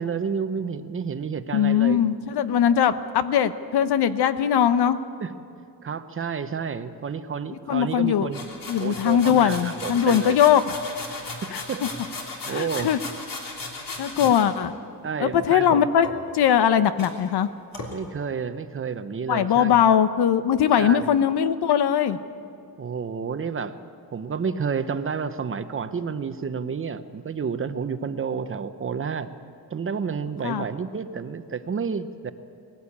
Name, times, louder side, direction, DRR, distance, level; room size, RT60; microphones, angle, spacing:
voice 1, 0.0-2.0 5.2-5.4 5.8-8.4 8.8-10.4 11.4-11.9 12.5-12.9 14.2-14.3 15.0-15.9 17.9-19.8 20.8-21.1 22.8-29.3 29.7-32.3, right 6 dB, 35° right, 11 dB, 0.7 m, -30 dB
voice 2, 1.5-5.0 7.7-8.3 8.7-10.7 11.5-11.6 12.5-13.0 14.0-14.7 15.2-16.1 16.3-17.5 19.3-22.2 30.4-30.6, left 9 dB, 90° left, 12 dB, 0.9 m, -20 dB
sound 1, 8.3-14.5 16.0-16.6 17.0-17.1 17.7-17.9, left 3 dB, 60° left, 3.4 m, -36 dB
20.0 x 16.0 x 8.5 m, 2.5 s
wide cardioid pair, 160°, 38 cm